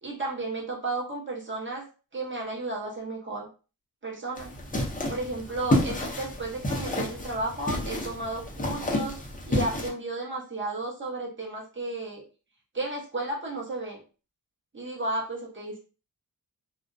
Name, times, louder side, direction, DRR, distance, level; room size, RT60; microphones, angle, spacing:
voice 1, 0.0-1.8 2.1-3.5 4.0-4.5 5.1-9.2 9.5-12.2 12.7-14.0 14.7-15.8, right 2 dB, 30° right, -3 dB, 0.8 m, -33 dB
sound 1, 4.4-9.9, left 1 dB, 20° left, 0.6 m, -30 dB
2.4 x 2.0 x 2.5 m, 0.36 s
wide cardioid pair, 100°, 39 cm